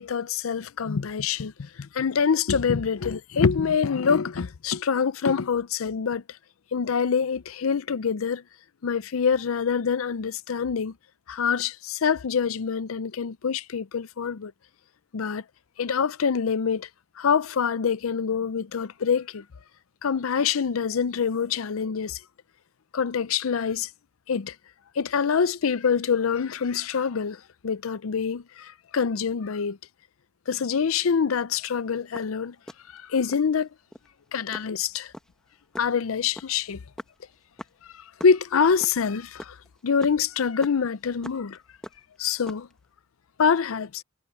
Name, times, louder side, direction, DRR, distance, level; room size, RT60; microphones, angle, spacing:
voice 1, 0.0-6.2 6.7-8.4 8.8-10.9 11.3-14.5 15.1-15.4 15.8-16.9 17.2-19.4 20.0-22.2 22.9-23.9 24.3-24.5 25.0-29.8 30.5-32.5 32.9-33.7 34.3-35.1 35.8-36.8 38.2-39.6 39.8-41.6 42.2-42.7 43.4-44.0, left 6 dB, 80° left, 0.5 m, -25 dB
sound 1, 31.9-33.5 33.9-34.1 34.5-38.4 38.6-41.6 41.8-42.8, equal, 5° left, 1.0 m, -43 dB
head